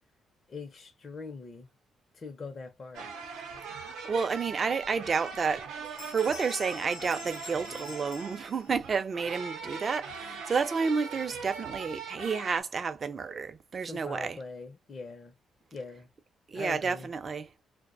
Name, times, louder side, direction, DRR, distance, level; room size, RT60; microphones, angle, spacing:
voice 1, 0.5-1.7 2.1-3.1 13.8-15.3 15.7-16.1 16.5-17.1, left 4 dB, 40° left, 0.5 m, -42 dB
sound 1, 2.9-12.6, right 5 dB, 90° right, 0.6 m, -41 dB
voice 2, 3.8-14.4 16.5-17.5, right 5 dB, 40° right, 0.4 m, -31 dB
sound 2, 4.8-4.9 5.3-5.6 5.8-9.0, left 5 dB, 85° left, 0.7 m, -47 dB
2.4 x 2.1 x 2.4 m
cardioid pair, 90°, 0 cm